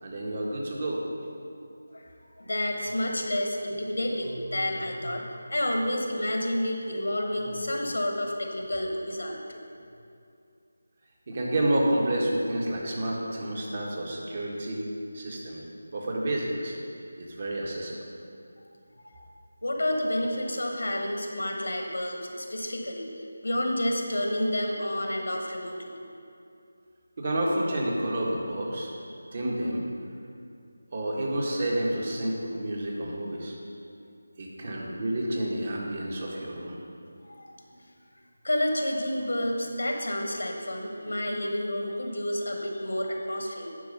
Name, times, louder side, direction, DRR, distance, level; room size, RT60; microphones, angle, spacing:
voice 1, 0.0-1.0 11.3-14.9 15.1-15.6 15.9-16.8 17.2-18.0 27.2-28.9 29.3-29.9 30.9-33.6 34.4-36.8, right 1 dB, 40° right, -2 dB, 1.5 m, -29 dB
voice 2, 2.4-9.6 19.0-19.1 19.6-23.1 23.4-25.9 37.2-37.5 38.4-43.7, left 1 dB, 80° left, 2 dB, 1.5 m, -30 dB
10.0 x 4.8 x 5.5 m, 2.5 s
figure-of-eight pair, 165°, 0 cm